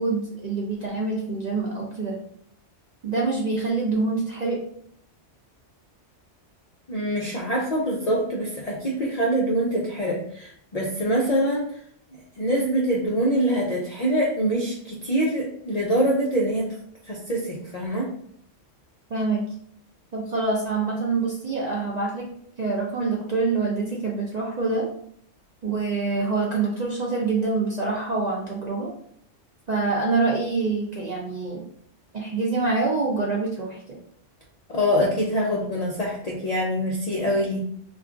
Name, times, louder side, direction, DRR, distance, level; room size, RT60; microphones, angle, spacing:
voice 1, 0.0-2.2 3.0-4.7 19.1-19.4 20.1-22.3 22.6-24.9 25.6-28.9 29.7-31.6 32.1-34.0, right 3 dB, 55° right, -3 dB, 0.5 m, -25 dB
voice 2, 6.9-11.8 12.1-16.7 17.1-18.1 34.7-37.6, equal, 60° left, -3 dB, 0.4 m, -24 dB
2.4 x 2.3 x 3.6 m, 0.65 s
omnidirectional pair, 1.2 m